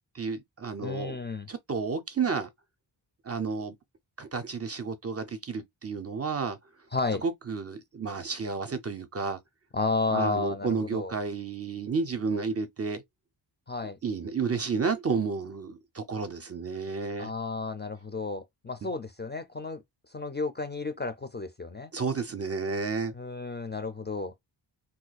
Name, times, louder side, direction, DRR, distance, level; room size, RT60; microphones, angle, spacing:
voice 1, 0.1-1.2 1.5-2.5 3.2-3.7 4.2-6.6 7.2-9.4 10.1-13.0 14.0-17.3 21.9-23.1, right 4 dB, 35° right, 0.5 m, -31 dB
voice 2, 0.8-1.5 6.9-7.2 9.7-11.1 13.7-14.0 17.2-19.8 20.1-21.9 23.1-24.3, left 3 dB, 25° left, 0.4 m, -32 dB
2.7 x 2.2 x 4.0 m
wide cardioid pair, 135°, 47 cm